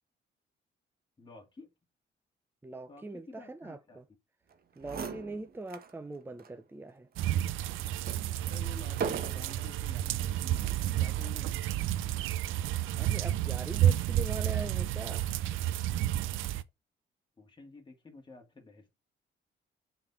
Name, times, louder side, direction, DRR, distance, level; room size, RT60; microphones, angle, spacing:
voice 1, 1.2-1.7 2.9-4.0 8.5-11.6 17.4-18.9, left 3 dB, 25° left, 2.2 m, -51 dB
voice 2, 2.6-4.0 4.8-7.1 13.0-15.3, right 2 dB, 10° right, 0.7 m, -42 dB
sound 1, 4.5-4.6 4.8-5.9 6.4-6.5 7.2-9.7 10.5-10.9, right 6 dB, 50° right, 1.2 m, -39 dB
sound 2, 7.2-16.6, right 12 dB, 85° right, 0.5 m, -31 dB
7.5 x 4.4 x 5.8 m
cardioid pair, 90°, 20 cm